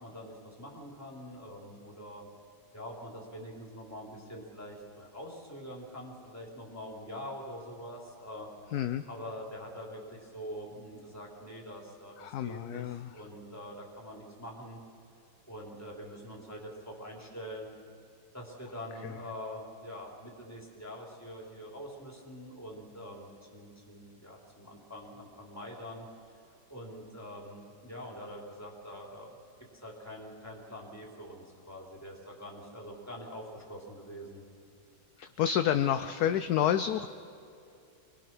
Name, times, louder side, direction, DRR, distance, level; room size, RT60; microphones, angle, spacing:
voice 1, 0.0-2.3 2.7-8.5 9.1-14.8 15.5-17.7 18.3-26.4 26.7-29.4 29.7-34.4, equal, 10° left, -2 dB, 3.3 m, -44 dB
voice 2, 8.7-9.0 12.2-13.0 35.4-37.1, left 10 dB, 70° left, 10 dB, 1.0 m, -28 dB
25.0 x 20.0 x 6.1 m, 2.7 s
omnidirectional pair, 2.1 m